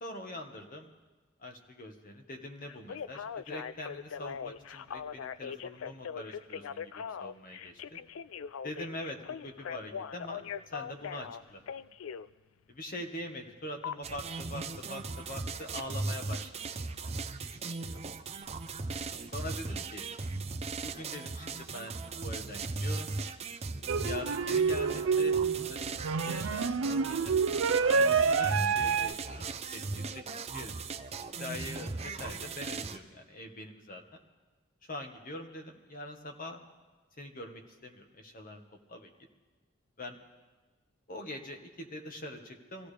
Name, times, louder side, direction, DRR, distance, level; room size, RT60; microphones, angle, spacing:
voice 1, 0.0-0.9 1.4-8.0 8.6-10.4 10.7-11.6 12.7-16.5 16.8-17.1 17.6-18.0 19.3-20.1 20.8-23.1 24.0-27.4 27.8-29.5 29.7-30.2 30.5-30.9 31.4-34.0 34.8-36.6 37.2-38.6 38.9-39.1 40.0-40.2 41.1-42.9, left 1 dB, 45° left, 3 dB, 1.5 m, -43 dB
Telephone, 2.7-12.3 13.8-14.0, left 7 dB, 80° left, 0.4 m, -40 dB
sound 1, 14.0-33.0, right 3 dB, 30° right, 0.6 m, -38 dB
sound 2, 23.9-29.1, right 5 dB, 75° right, 0.4 m, -28 dB
24.5 x 15.0 x 3.4 m, 1.2 s
head